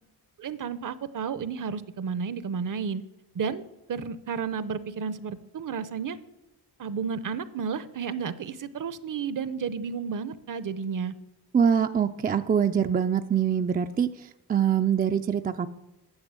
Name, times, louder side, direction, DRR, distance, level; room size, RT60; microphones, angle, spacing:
voice 1, 0.4-3.0 3.3-3.6 3.9-6.2 6.8-11.1, right 6 dB, 50° right, 15 dB, 0.7 m, -32 dB
voice 2, 11.5-15.7, right 8 dB, 25° right, 8 dB, 0.3 m, -24 dB
9.8 x 7.7 x 8.1 m, 0.96 s
wide cardioid pair, 145°, 40 cm